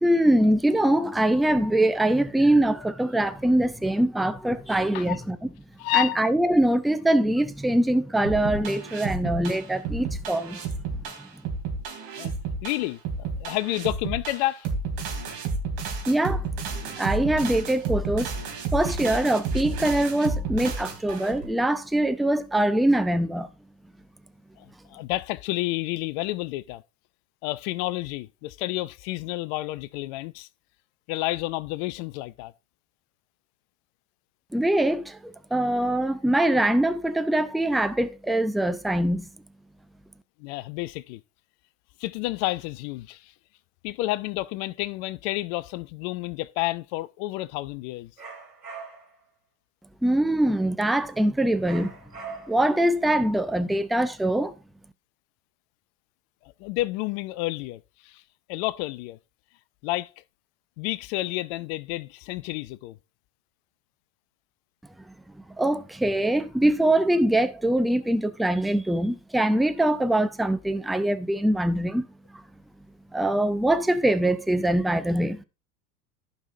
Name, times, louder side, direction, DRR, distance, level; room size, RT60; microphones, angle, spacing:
voice 1, 0.0-5.4 5.9-10.6 16.1-16.4 17.0-18.3 18.7-23.5 34.5-39.3 50.0-51.9 52.5-54.5 65.6-72.1 73.1-75.4, right 1 dB, ahead, 0.5 m, -23 dB
voice 2, 5.8-6.2 12.2-12.3 12.6-14.7 24.6-26.8 27.4-30.5 31.1-32.5 40.4-41.2 42.0-43.3 43.8-48.1 56.6-58.2 58.5-59.2 59.8-60.1 60.8-62.9, left 18 dB, 45° left, 0.6 m, -30 dB
sound 1, 8.2-21.4, right 4 dB, 45° right, 3.3 m, -31 dB
sound 2, 48.2-49.2 51.6-52.7, right 5 dB, 90° right, 3.0 m, -41 dB
14.5 x 5.4 x 2.7 m
hypercardioid pair, 85°, 47 cm